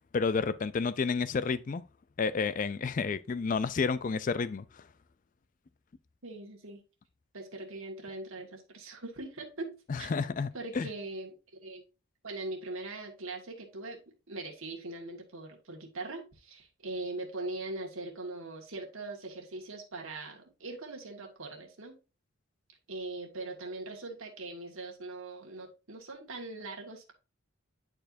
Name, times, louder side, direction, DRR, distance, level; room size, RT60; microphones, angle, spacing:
voice 1, 0.1-1.8 2.2-4.7 9.9-10.9, left 5 dB, 35° left, 0.3 m, -30 dB
voice 2, 6.2-6.8 7.3-10.1 10.5-11.3 11.6-11.8 12.2-14.0 14.3-22.0 22.9-27.1, right 2 dB, 70° right, 1.7 m, -41 dB
10.0 x 4.5 x 2.6 m
head